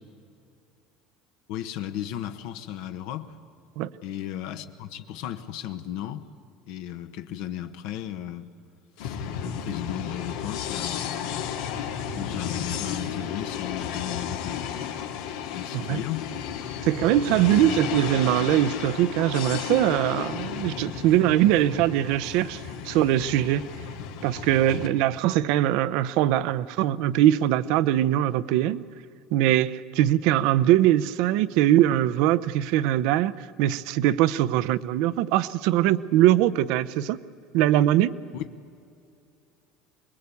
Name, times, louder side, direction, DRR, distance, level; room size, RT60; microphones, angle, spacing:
voice 1, 1.5-3.4 4.0-6.3 6.7-8.5 9.0-11.7 12.1-14.9 15.5-16.3 17.2-17.7 38.3-38.4, left 11 dB, 70° left, 1.1 m, -35 dB
sound 1, 9.0-24.9, left 8 dB, 85° left, 2.1 m, -33 dB
voice 2, 16.8-23.7 24.2-28.8 29.3-37.2 37.5-38.1, right 13 dB, 70° right, 0.7 m, -22 dB
24.5 x 21.0 x 8.5 m
cardioid pair, 140°, 0 cm